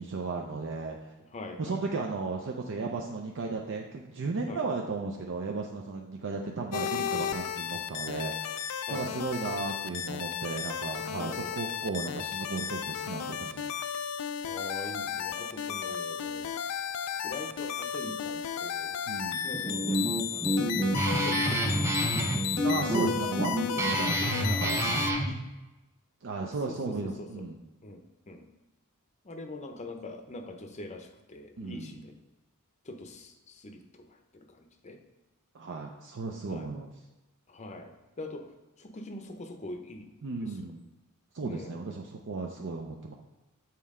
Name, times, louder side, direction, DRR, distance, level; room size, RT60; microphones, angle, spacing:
voice 1, 0.0-1.1 1.6-8.6 8.9-13.7 19.1-19.5 22.6-25.3 26.2-27.6 31.6-32.0 35.5-36.9 40.2-40.8 41.3-43.1, right 3 dB, 55° right, 1 dB, 0.5 m, -35 dB
voice 2, 1.3-1.8 4.5-4.6 8.9-9.2 11.2-11.5 14.4-16.5 17.2-19.0 19.4-20.0 20.3-20.7 21.1-22.0 26.7-27.5 27.8-28.4 29.2-32.1 32.9-35.0 36.5-36.7 37.5-38.5 38.8-40.1 41.4-41.8, left 1 dB, 30° left, 5 dB, 0.6 m, -43 dB
sound 1, 6.7-25.1, left 8 dB, 80° left, 0.4 m, -34 dB
Guitar, 19.5-25.3, right 1 dB, 10° right, 0.5 m, -28 dB
7.5 x 4.3 x 3.6 m, 1.1 s
head